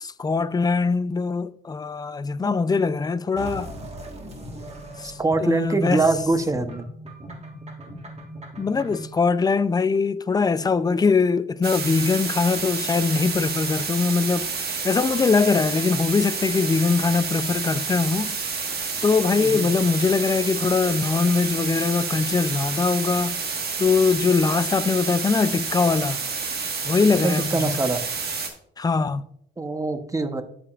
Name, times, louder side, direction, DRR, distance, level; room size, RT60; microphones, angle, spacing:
voice 1, 0.0-3.7 5.0-6.0 8.6-18.4 19.0-23.4 23.8-26.2 26.8-27.8 28.8-29.2, left 4 dB, 20° left, 0.4 m, -22 dB
sound 1, 3.4-9.2, right 1 dB, 30° right, 1.4 m, -39 dB
voice 2, 5.2-6.9 19.4-19.7 27.2-28.0 29.6-30.4, right 3 dB, 15° right, 0.8 m, -23 dB
sound 2, 11.6-28.5, right 5 dB, 55° right, 1.4 m, -29 dB
13.5 x 5.1 x 2.4 m
cardioid pair, 90°, 20 cm